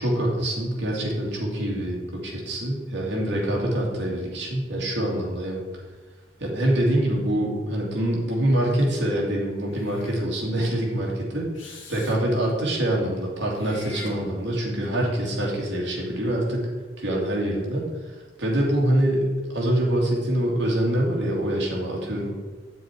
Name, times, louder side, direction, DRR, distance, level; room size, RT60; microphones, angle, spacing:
voice 1, 0.0-2.0 2.2-5.6 6.4-16.7 17.0-17.9 18.4-19.3 19.5-22.4, right 1 dB, 65° right, -2 dB, 2.6 m, -25 dB
Meow / Hiss, 9.7-10.3 11.5-12.2 13.5-14.7, left 2 dB, 80° left, 1.8 m, -43 dB
9.0 x 7.1 x 4.7 m, 1.4 s
head